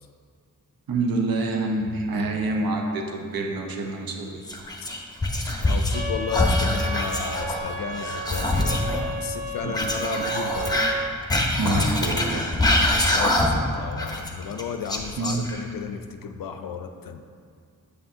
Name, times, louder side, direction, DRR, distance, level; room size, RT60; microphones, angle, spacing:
voice 1, 0.9-4.4 9.6-9.8 11.6-12.5 15.2-15.5, right 2 dB, 75° right, 2 dB, 0.8 m, -27 dB
Whispering, 4.4-6.0 6.3-9.0 9.7-13.7 14.0-15.8, left 1 dB, 10° left, 0.9 m, -24 dB
voice 2, 5.6-10.8 13.0-17.2, left 7 dB, 70° left, 7 dB, 0.5 m, -33 dB
sound 1, 5.9-11.1, right 2 dB, 25° right, 0.6 m, -32 dB
7.8 x 5.6 x 2.7 m, 2.3 s
cardioid pair, 55°, 35 cm